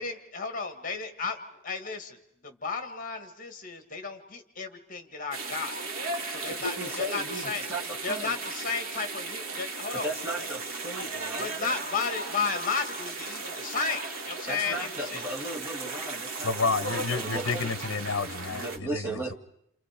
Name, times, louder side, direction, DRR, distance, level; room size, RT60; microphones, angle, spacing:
voice 1, 0.0-2.2 2.4-5.8 6.3-7.6 8.0-10.1 11.4-15.2, left 4 dB, 40° left, 1.9 m, -33 dB
sound 1, 5.3-18.8, right 3 dB, 70° right, 1.7 m, -36 dB
voice 2, 6.5-8.3 9.9-11.7 14.5-17.7 18.5-19.3, right 1 dB, 10° right, 2.7 m, -36 dB
voice 3, 16.4-19.3, left 4 dB, 55° left, 1.0 m, -30 dB
28.5 x 28.5 x 5.1 m
head